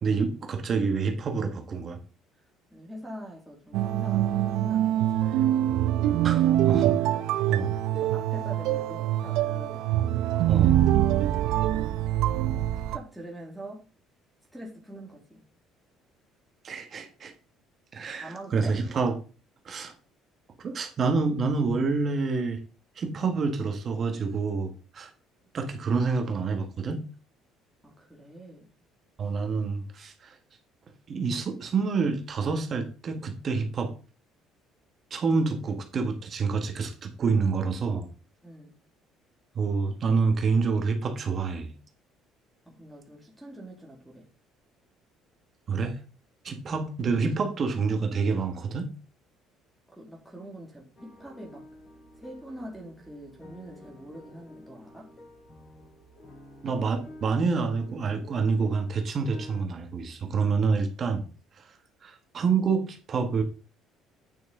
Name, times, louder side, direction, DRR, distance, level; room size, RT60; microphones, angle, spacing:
voice 1, 0.0-2.0 6.2-7.0 7.5-7.7 10.5-10.8 16.6-17.3 17.9-19.1 19.6-19.9 20.6-22.6 23.0-25.1 25.5-27.0 29.2-30.3 31.1-33.9 35.1-38.1 39.5-41.7 45.7-46.0 46.4-48.9 56.6-61.3 61.6-61.7 62.0-63.4, right 4 dB, 40° right, 5 dB, 1.4 m, -27 dB
voice 2, 2.7-5.6 7.1-7.5 7.9-9.8 11.1-11.4 12.7-13.8 14.5-15.4 18.2-18.8 27.8-28.7 38.4-38.7 42.7-44.3 49.9-51.7 52.2-55.1, right 1 dB, ahead, -2 dB, 2.2 m, -44 dB
sound 1, 3.7-13.0, right 12 dB, 75° right, 0.5 m, -24 dB
sound 2, 51.0-59.6, left 1 dB, 35° left, 3.7 m, -50 dB
8.9 x 6.0 x 3.7 m, 0.35 s
cardioid pair, 130°, 0 cm